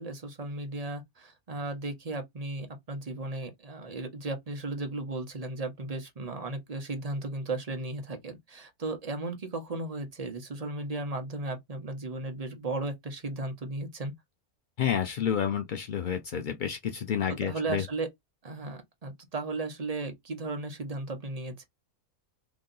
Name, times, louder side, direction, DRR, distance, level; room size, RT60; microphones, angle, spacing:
voice 1, 0.0-14.1 17.3-18.1 18.4-21.6, right 2 dB, 35° right, 0.7 m, -35 dB
voice 2, 14.8-17.8, left 8 dB, 80° left, 0.4 m, -30 dB
3.0 x 2.7 x 3.8 m
omnidirectional pair, 1.5 m